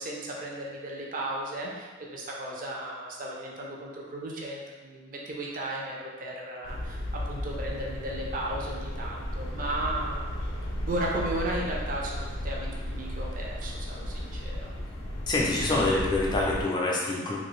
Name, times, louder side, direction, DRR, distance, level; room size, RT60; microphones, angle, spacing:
voice 1, 0.0-10.2 10.9-14.7, right 1 dB, 45° right, -2 dB, 0.5 m, -35 dB
sound 1, 6.6-16.6, left 1 dB, 75° left, 0.5 m, -35 dB
voice 2, 15.3-17.4, left 2 dB, 20° left, -3 dB, 0.4 m, -26 dB
2.7 x 2.6 x 3.0 m, 1.5 s
head